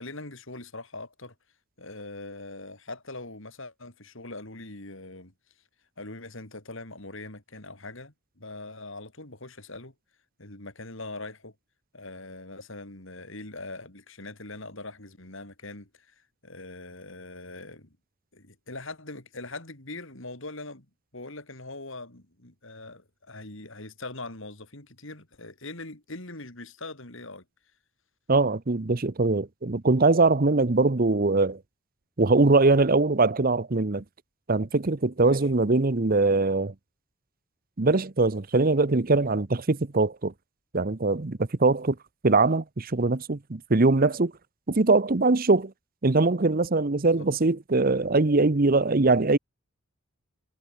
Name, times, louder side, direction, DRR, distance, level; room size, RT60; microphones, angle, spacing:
voice 1, 0.0-1.3 1.8-5.3 6.0-9.9 10.4-11.5 11.9-16.2 16.4-18.0 18.3-20.9 21.1-27.4 35.2-35.4 47.1-47.3, left 2 dB, 60° left, 3.8 m, -42 dB
voice 2, 28.3-31.6 32.2-34.0 34.5-36.7 37.8-40.3 40.7-42.0 42.2-44.3 44.7-45.7 46.0-49.4, right 3 dB, 40° right, 0.8 m, -22 dB
head